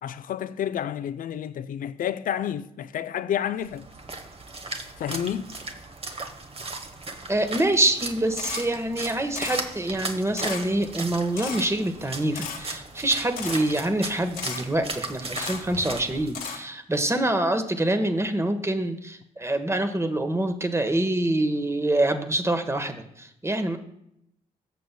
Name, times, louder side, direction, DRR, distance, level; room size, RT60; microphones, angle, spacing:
voice 1, 0.0-3.9 5.0-5.6, left 9 dB, 65° left, 0.5 m, -30 dB
Splash splatter, 3.6-16.4, right 3 dB, 40° right, 1.2 m, -37 dB
voice 2, 7.3-23.8, right 1 dB, 20° right, 1.2 m, -25 dB
Camera, 8.4-8.6 9.3-9.6 10.4-10.6 11.4-11.6 12.3-12.6 13.4-13.6 14.4-14.6 15.3-15.6 16.3-16.6, left 7 dB, 85° left, 1.5 m, -33 dB
15.0 x 6.8 x 2.2 m
supercardioid pair, 50°, 15 cm